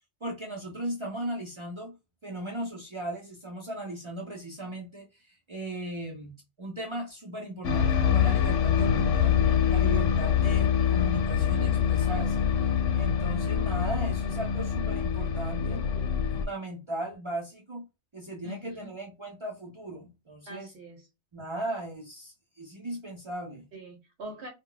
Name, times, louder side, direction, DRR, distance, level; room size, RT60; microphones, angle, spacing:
voice 1, 0.2-1.9 2.2-9.4 9.7-12.5 12.9-15.8 16.3-17.8 18.1-20.7 21.3-23.6, right 1 dB, 50° right, 0.3 m, -37 dB
sound 1, 7.6-16.5, left 8 dB, 80° left, 0.9 m, -25 dB
voice 2, 18.4-18.9 20.5-21.1 23.7-24.5, equal, 65° right, 0.9 m, -43 dB
2.2 x 2.0 x 3.7 m
omnidirectional pair, 1.3 m